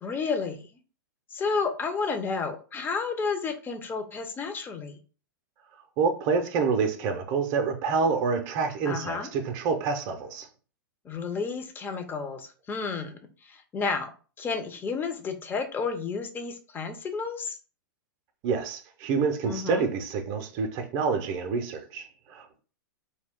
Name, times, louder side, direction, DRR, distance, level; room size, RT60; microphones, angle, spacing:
voice 1, 0.0-0.7 1.3-5.0 8.8-9.3 11.0-14.1 14.4-17.6 19.4-19.9, left 5 dB, 20° left, 0.5 m, -31 dB
voice 2, 6.0-10.5 18.4-22.6, right 5 dB, 40° right, 0.5 m, -27 dB
2.3 x 2.1 x 3.5 m
hypercardioid pair, 105°, 11 cm